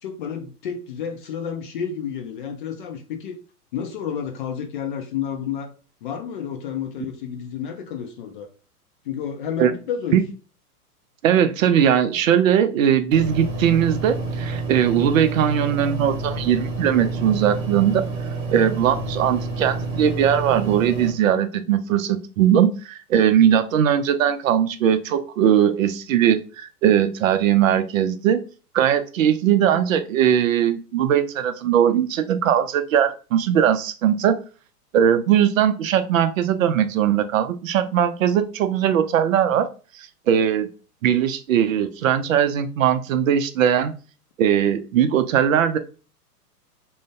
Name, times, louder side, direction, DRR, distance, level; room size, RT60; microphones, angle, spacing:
voice 1, 0.0-3.4 3.7-5.7 6.0-8.5 9.0-10.2, left 8 dB, 35° left, 0.4 m, -30 dB
voice 2, 11.2-18.0 18.5-28.4 28.7-34.4 34.9-39.7 40.3-40.7 41.0-43.9 44.4-45.8, right 9 dB, 60° right, 0.5 m, -19 dB
sound 1, 13.1-21.1, right 3 dB, 35° right, 0.9 m, -29 dB
2.5 x 2.2 x 3.4 m
hypercardioid pair, 110°, 46 cm